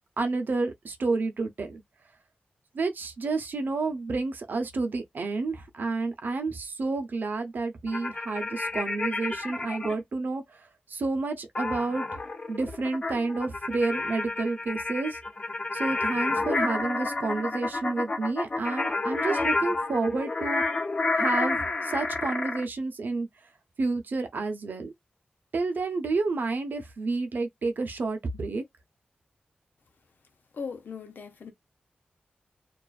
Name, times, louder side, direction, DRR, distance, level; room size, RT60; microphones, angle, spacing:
voice 1, 0.2-1.8 2.7-10.6 10.9-12.0 12.5-15.2 15.7-20.6 21.1-23.3 23.8-24.9 25.5-28.6, right 3 dB, 70° right, 0.6 m, -30 dB
sound 1, 7.9-9.9 11.5-22.6, left 3 dB, 35° left, 0.5 m, -30 dB
voice 2, 30.5-31.5, left 5 dB, 75° left, 0.7 m, -38 dB
2.4 x 2.3 x 2.4 m
wide cardioid pair, 125°, 3 cm